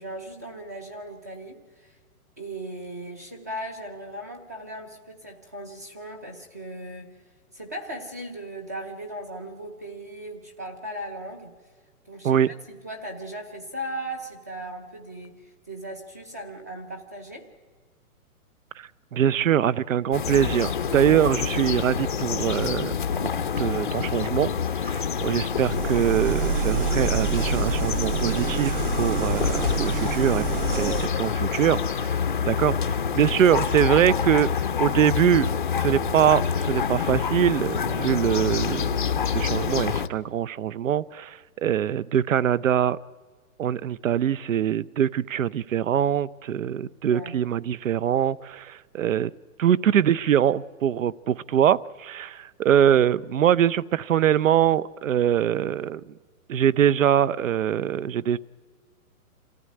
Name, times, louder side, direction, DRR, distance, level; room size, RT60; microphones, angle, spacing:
voice 1, 0.0-2.0 2.4-7.1 7.5-11.5 12.1-12.4 12.7-15.4 15.7-17.5 25.2-25.4 47.1-47.4, right 1 dB, 10° right, 6 dB, 0.6 m, -37 dB
voice 2, 18.8-22.9 23.6-24.5 24.8-30.4 30.8-32.1 32.5-34.5 34.8-35.5 35.8-43.0 43.6-49.3 49.6-56.1 56.5-58.4, right 10 dB, 60° right, 21 dB, 0.7 m, -23 dB
sound 1, 20.1-40.1, left 7 dB, 35° left, 0.6 m, -27 dB
sound 2, 25.5-31.1, right 9 dB, 80° right, 1.4 m, -28 dB
27.0 x 15.0 x 9.7 m, 1.5 s
hypercardioid pair, 175°, 44 cm